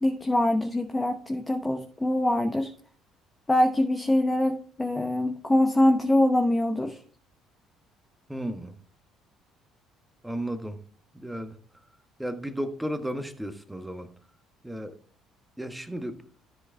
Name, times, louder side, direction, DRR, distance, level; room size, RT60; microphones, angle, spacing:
voice 1, 0.0-2.7 3.5-7.0, left 1 dB, 15° left, 5 dB, 1.0 m, -24 dB
voice 2, 8.3-8.8 10.2-10.8 11.1-11.6 12.2-14.1 14.6-15.0 15.6-16.2, right 1 dB, 5° right, 9 dB, 1.2 m, -34 dB
13.5 x 4.9 x 3.3 m, 0.44 s
figure-of-eight pair, 50°, 0 cm